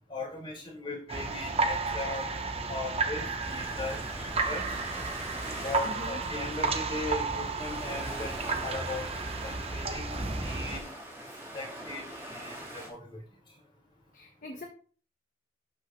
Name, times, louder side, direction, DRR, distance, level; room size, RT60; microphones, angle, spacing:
voice 1, 0.1-4.8 5.6-10.9 11.2-11.3 11.5-13.2, left 2 dB, 25° left, -5 dB, 4.9 m, -39 dB
sound 1, 1.1-10.8, right 3 dB, 30° right, 0.8 m, -32 dB
Ocean, 3.4-12.9, right 1 dB, 15° right, 3.5 m, -43 dB
voice 2, 5.8-6.2 14.1-14.6, left 1 dB, 40° left, 2 dB, 1.1 m, -42 dB
12.5 x 5.6 x 3.1 m, 0.42 s
head